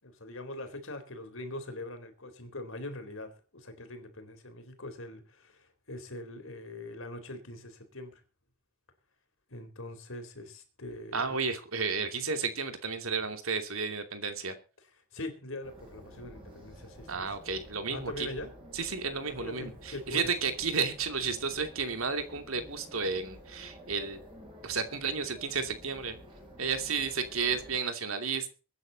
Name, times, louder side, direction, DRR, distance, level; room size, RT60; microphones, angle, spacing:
voice 1, 0.0-8.2 9.5-11.4 15.1-17.3 17.9-18.5 19.2-20.3 26.9-27.1, left 1 dB, 70° left, 7 dB, 4.0 m, -42 dB
voice 2, 11.1-14.5 17.1-18.3 18.7-24.2 24.6-26.2 26.6-28.5, right 5 dB, 75° right, 7 dB, 2.7 m, -32 dB
sound 1, 15.6-27.8, equal, 25° right, 7.5 m, -51 dB
22.5 x 10.0 x 4.1 m, 0.35 s
head